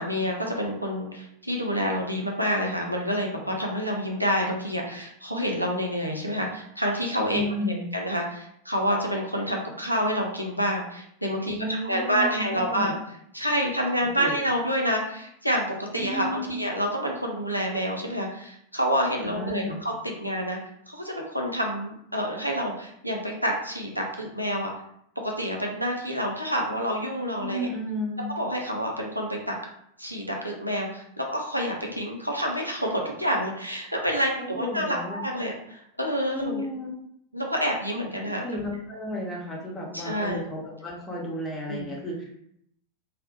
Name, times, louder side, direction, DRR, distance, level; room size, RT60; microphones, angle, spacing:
voice 1, 0.0-7.4 7.9-11.6 11.8-12.9 13.3-20.6 20.9-24.7 25.2-27.7 28.4-29.5 30.0-36.7 37.3-38.4 39.9-40.4 41.7-41.9, equal, 90° right, 0 dB, 0.4 m, -28 dB
voice 2, 7.3-7.9 11.5-13.0 14.2-14.4 15.9-16.6 19.2-19.8 27.4-28.2 34.4-35.3 36.3-36.9 38.2-42.4, left 1 dB, 15° left, -3 dB, 0.7 m, -32 dB
2.1 x 2.0 x 2.8 m, 0.73 s
figure-of-eight pair, 90°, 0 cm